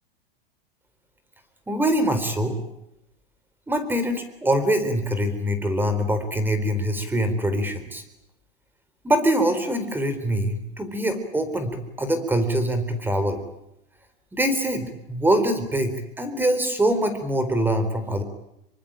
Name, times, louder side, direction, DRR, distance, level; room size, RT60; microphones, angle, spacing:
voice 1, 1.7-2.6 3.7-8.0 9.0-13.4 14.3-18.2, right 1 dB, 5° right, 10 dB, 4.1 m, -24 dB
26.5 x 24.0 x 9.1 m, 0.84 s
supercardioid pair, 135°, 29 cm